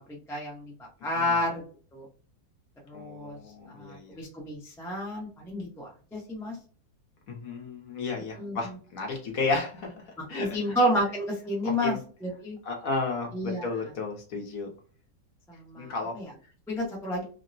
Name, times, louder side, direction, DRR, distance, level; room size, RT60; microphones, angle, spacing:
voice 1, 0.3-0.7 1.0-1.6 1.9-2.1 2.9-3.4 3.7-6.5 8.4-8.8 10.3-12.6 13.3-13.6 15.5-16.3 16.7-17.2, equal, 5° left, -2 dB, 0.3 m, -30 dB
voice 2, 2.9-4.1 7.3-10.8 11.6-12.0 12.6-14.7 15.8-16.2, left 3 dB, 60° left, 1 dB, 1.1 m, -33 dB
3.6 x 2.0 x 2.6 m, 0.40 s
omnidirectional pair, 1.9 m